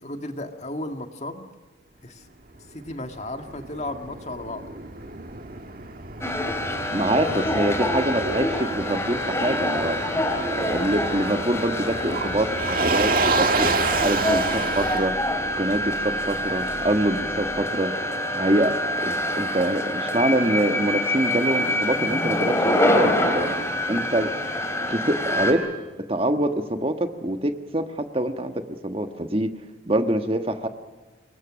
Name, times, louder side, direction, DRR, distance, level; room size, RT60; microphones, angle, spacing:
voice 1, 0.0-1.5 2.0-2.3 2.7-4.6 7.0-8.0, left 1 dB, 35° left, 6 dB, 1.9 m, -35 dB
Motor vehicle (road), 2.5-17.6, right 3 dB, 50° right, 1.8 m, -30 dB
sound 1, 6.2-25.5, left 1 dB, 15° left, 3.3 m, -26 dB
voice 2, 6.9-10.0 10.6-13.7 14.0-15.1 15.5-17.9 18.4-23.5 23.9-24.3 24.9-25.7 26.1-29.5 29.9-30.7, right 1 dB, 30° right, 7 dB, 1.4 m, -25 dB
27.0 x 22.5 x 6.3 m, 1.2 s
head